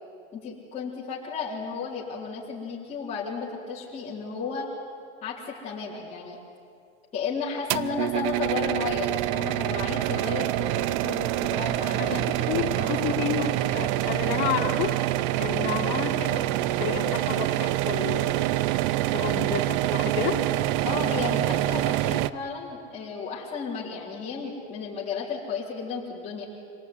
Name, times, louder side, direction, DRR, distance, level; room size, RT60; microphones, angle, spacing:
voice 1, 0.3-4.7 5.2-6.4 7.1-12.9 20.8-26.4, left 5 dB, 20° left, -9 dB, 4.0 m, -33 dB
sound 1, 7.7-22.3, right 15 dB, 50° right, 0.6 m, -26 dB
voice 2, 12.0-15.0 15.4-18.5 19.1-20.4, left 9 dB, 40° left, -1 dB, 3.4 m, -31 dB
26.0 x 18.5 x 9.8 m, 2.3 s
supercardioid pair, 150°, 32 cm